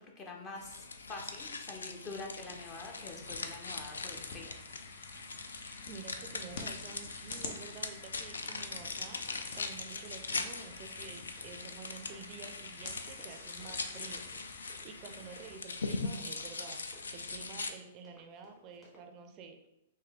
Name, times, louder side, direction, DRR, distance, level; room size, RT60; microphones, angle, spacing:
voice 1, 0.0-4.5, left 3 dB, 30° left, 1 dB, 0.8 m, -46 dB
sound 1, 0.6-17.7, left 4 dB, 90° left, 0.3 m, -41 dB
sound 2, 2.6-15.6, left 4 dB, 60° left, 0.7 m, -49 dB
voice 2, 5.9-16.8 17.1-19.6, right 5 dB, 35° right, 6 dB, 0.4 m, -50 dB
Run, 8.9-19.1, equal, 10° left, 1.4 m, -62 dB
3.6 x 2.7 x 3.4 m, 0.89 s
hypercardioid pair, 125°, 0 cm